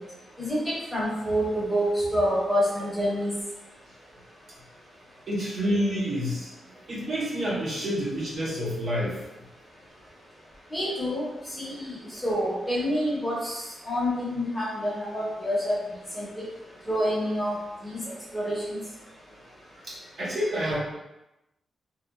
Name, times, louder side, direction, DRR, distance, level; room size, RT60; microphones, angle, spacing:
voice 1, 0.4-3.3 10.7-11.2 11.6-13.6 13.8-15.8 16.1-16.4 16.9-17.5 17.8-18.0 18.3-18.8, equal, 5° left, -7 dB, 0.7 m, -27 dB
voice 2, 5.3-6.5 6.9-9.2 19.8-20.8, equal, 45° right, -6 dB, 0.6 m, -28 dB
2.8 x 2.2 x 2.5 m, 0.94 s
wide cardioid pair, 170°, 0 cm